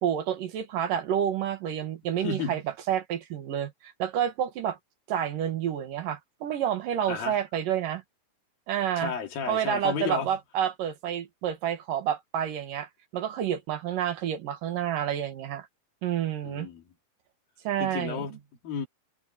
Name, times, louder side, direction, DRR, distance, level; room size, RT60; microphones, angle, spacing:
voice 1, 0.0-2.6 2.9-4.8 5.1-8.0 8.7-9.1 9.5-15.7 16.0-16.7 17.6-18.3, right 9 dB, 70° right, 3.2 m, -29 dB
voice 2, 2.2-2.6 7.1-7.3 9.0-10.4 16.4-16.8 17.8-18.9, left 6 dB, 80° left, 4.5 m, -33 dB
omnidirectional pair, 4.1 m